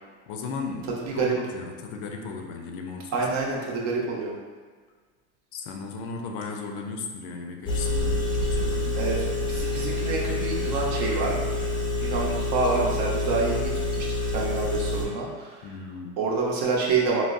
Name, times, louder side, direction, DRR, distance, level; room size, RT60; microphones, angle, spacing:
voice 1, 0.3-3.2 5.5-9.1 15.6-16.2, left 4 dB, 60° left, 2 dB, 0.5 m, -36 dB
voice 2, 3.1-4.3 9.0-9.2 9.5-11.4 12.0-13.7 14.0-15.7 16.2-17.2, right 4 dB, 50° right, -2 dB, 0.8 m, -27 dB
Engine, 7.7-15.1, left 2 dB, 15° left, 0.5 m, -27 dB
3.9 x 2.0 x 2.4 m, 1.5 s
supercardioid pair, 110°, 36 cm